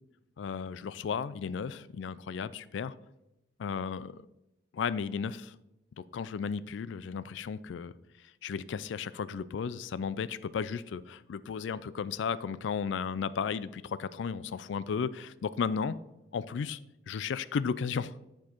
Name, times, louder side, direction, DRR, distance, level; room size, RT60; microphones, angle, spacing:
voice 1, 0.4-3.0 3.6-4.3 4.7-5.6 6.0-7.9 8.4-16.0 16.3-16.8 17.1-18.1, left 6 dB, 75° left, 16 dB, 0.3 m, -34 dB
9.6 x 4.6 x 4.4 m, 0.90 s
head